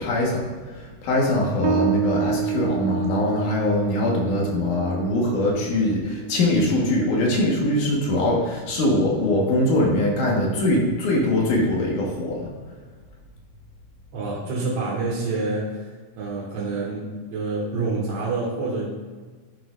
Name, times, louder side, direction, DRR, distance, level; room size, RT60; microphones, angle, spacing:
voice 1, 0.0-12.5, left 1 dB, 70° left, -2 dB, 2.8 m, -22 dB
Bass guitar, 1.6-8.8, right 11 dB, 85° right, 1.5 m, -30 dB
voice 2, 14.1-18.8, right 3 dB, 55° right, -6 dB, 2.3 m, -27 dB
12.0 x 5.9 x 2.5 m, 1.4 s
omnidirectional pair, 3.8 m